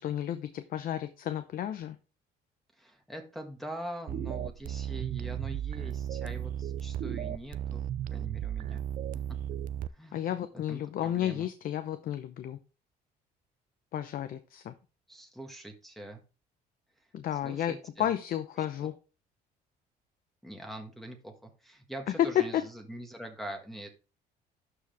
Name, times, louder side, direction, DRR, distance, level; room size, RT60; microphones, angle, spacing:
voice 1, 0.0-2.0 10.1-12.6 13.9-14.7 17.1-18.9 22.5-22.6, left 11 dB, 60° left, 10 dB, 0.7 m, -33 dB
voice 2, 2.8-8.8 9.3-9.4 9.9-11.5 15.1-16.2 17.0-18.1 18.8-18.9 20.4-23.9, right 1 dB, ahead, 1 dB, 1.6 m, -43 dB
sound 1, 4.1-9.9, right 10 dB, 55° right, 0.5 m, -35 dB
12.0 x 4.9 x 3.4 m, 0.33 s
cardioid pair, 110°, 17 cm